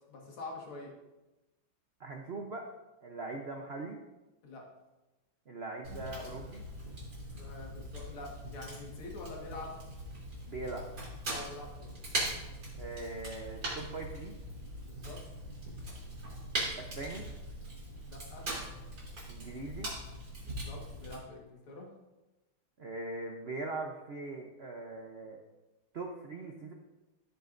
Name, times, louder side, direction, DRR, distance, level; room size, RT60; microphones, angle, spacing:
voice 1, 0.1-0.9 4.4-4.6 7.3-9.8 11.3-11.9 14.8-15.2 18.0-18.5 20.4-21.9, left 2 dB, 85° left, -1 dB, 2.6 m, -46 dB
voice 2, 2.0-2.7 3.0-4.0 5.5-6.6 10.5-10.9 12.7-14.3 16.8-17.2 19.3-19.9 22.8-25.4 25.9-26.7, right 3 dB, 80° right, 2 dB, 0.5 m, -41 dB
Fire, 5.8-21.2, right 1 dB, 60° right, 4.1 m, -41 dB
16.0 x 6.7 x 2.6 m, 1.0 s
omnidirectional pair, 2.3 m